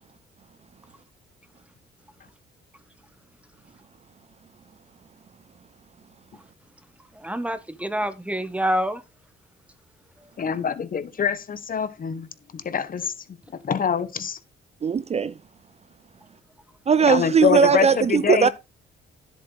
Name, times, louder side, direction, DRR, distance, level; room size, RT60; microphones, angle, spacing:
voice 1, 7.1-9.0, equal, 5° right, 1.3 m, -26 dB
voice 2, 10.4-12.3 12.5-13.1 13.6-14.4 17.1-18.5, left 7 dB, 45° left, 1.3 m, -25 dB
voice 3, 14.8-15.3 16.9-18.5, right 6 dB, 35° right, 0.5 m, -19 dB
10.5 x 8.1 x 4.0 m
cardioid pair, 90°, 20 cm